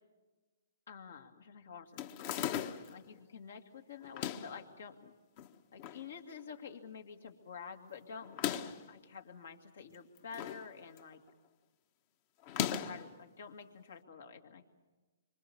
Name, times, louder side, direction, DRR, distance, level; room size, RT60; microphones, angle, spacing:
voice 1, 0.9-2.1 2.9-5.1 5.7-8.4 8.9-11.2 12.7-14.6, left 6 dB, 75° left, 4 dB, 2.3 m, -49 dB
sound 1, 2.0-3.0 4.0-4.6 5.4-6.0 6.4-6.5 6.7-6.8 8.2-8.9 9.9-10.7 11.0-11.3 12.4-13.1, left 10 dB, 40° left, 1.2 m, -37 dB
26.0 x 24.5 x 7.1 m, 1.3 s
hypercardioid pair, 140°, 0 cm